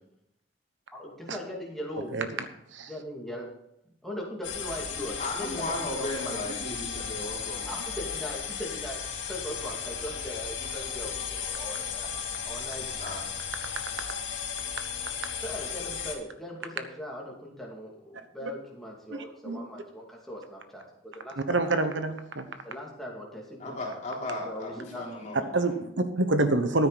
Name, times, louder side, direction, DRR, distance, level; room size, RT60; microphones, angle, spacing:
voice 1, 0.9-2.2 2.9-3.5 4.0-6.4 7.6-9.0 9.3-12.1 12.4-13.0 15.4-21.7 22.6-24.0 24.4-25.0, equal, ahead, -2 dB, 2.5 m, -39 dB
voice 2, 2.1-2.4 2.7-2.9 15.1-15.3 18.4-18.5 19.1-19.6 21.4-22.5 25.5-26.9, right 2 dB, 75° right, 9 dB, 1.1 m, -27 dB
sound 1, 4.4-16.1, left 7 dB, 70° left, 2.8 m, -35 dB
voice 3, 5.2-7.8 10.7-10.9 11.5-11.6 13.0-13.2 23.6-25.7, left 1 dB, 40° left, -3 dB, 3.9 m, -36 dB
13.5 x 9.6 x 4.1 m, 0.79 s
head